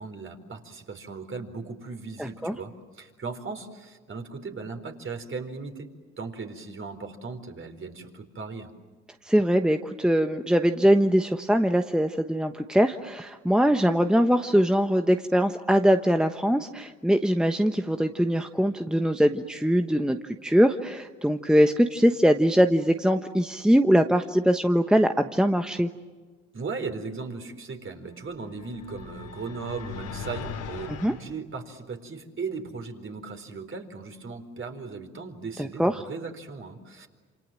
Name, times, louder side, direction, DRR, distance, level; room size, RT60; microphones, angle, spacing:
voice 1, 0.0-8.7 26.5-37.1, right 4 dB, 40° right, 6 dB, 4.3 m, -37 dB
voice 2, 2.2-2.5 9.2-25.9 31.0-31.1 35.6-35.9, equal, ahead, 7 dB, 1.2 m, -22 dB
sound 1, 28.3-31.2, left 7 dB, 85° left, 3.8 m, -39 dB
28.0 x 26.5 x 7.6 m, 1.4 s
supercardioid pair, 65°, 31 cm